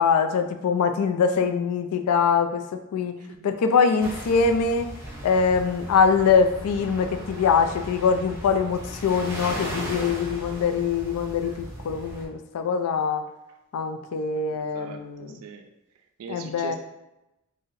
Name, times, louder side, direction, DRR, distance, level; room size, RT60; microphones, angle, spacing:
voice 1, 0.0-2.6 2.9-3.1 3.4-4.9 5.2-13.2 13.7-15.3 16.3-16.8, left 5 dB, 90° left, 7 dB, 0.3 m, -23 dB
voice 2, 3.2-3.5 14.5-15.7 16.2-16.8, right 6 dB, 85° right, 5 dB, 0.3 m, -41 dB
sound 1, 4.0-12.3, right 1 dB, 15° right, 0.6 m, -37 dB
2.6 x 2.0 x 3.8 m, 0.93 s
head